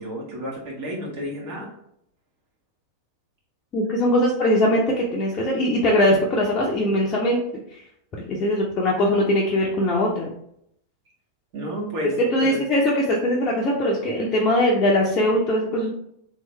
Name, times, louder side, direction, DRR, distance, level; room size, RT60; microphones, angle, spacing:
voice 1, 0.0-1.7 11.5-12.6, equal, 50° right, -4 dB, 1.5 m, -31 dB
voice 2, 3.7-7.4 8.3-10.3 12.3-15.9, left 1 dB, 30° left, -3 dB, 0.7 m, -21 dB
3.6 x 3.1 x 3.1 m, 0.73 s
figure-of-eight pair, 90°, 0 cm